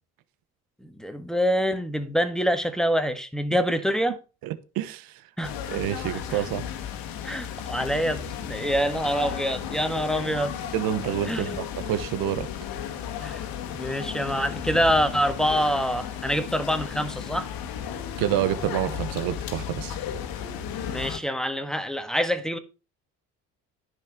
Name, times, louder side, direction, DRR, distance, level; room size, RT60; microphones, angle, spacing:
voice 1, 0.8-4.2 5.4-5.5 7.2-10.5 11.3-11.6 13.2-13.5 13.7-17.5 20.9-22.6, equal, ahead, 1.6 m, -26 dB
voice 2, 4.4-5.2 5.7-6.6 10.7-12.5 18.2-20.0, right 12 dB, 80° right, 1.0 m, -28 dB
sound 1, 5.4-21.2, left 9 dB, 80° left, 1.6 m, -34 dB
10.5 x 6.3 x 6.0 m
supercardioid pair, 80°, 34 cm